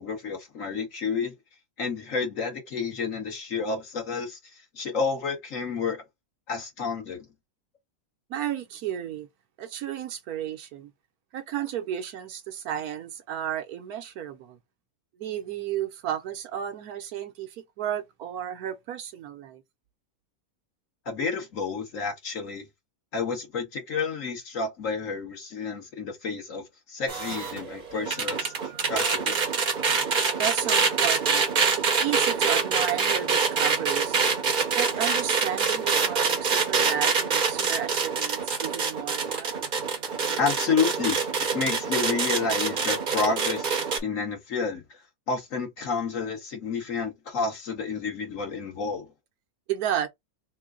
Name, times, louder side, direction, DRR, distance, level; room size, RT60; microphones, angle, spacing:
voice 1, 0.0-1.3 1.8-4.4 4.7-6.0 6.5-7.2 21.0-22.6 23.1-29.4 40.4-41.3 41.5-43.7 44.0-44.8 45.3-49.1, left 5 dB, 60° left, 1.7 m, -30 dB
voice 2, 8.3-9.3 9.6-10.9 11.3-14.6 15.2-19.6 30.4-31.4 31.7-34.2 34.7-39.8 49.7-50.1, right 10 dB, 80° right, 1.3 m, -33 dB
sound 1, 27.1-44.0, right 5 dB, 40° right, 0.8 m, -25 dB
3.8 x 2.2 x 3.7 m
omnidirectional pair, 1.6 m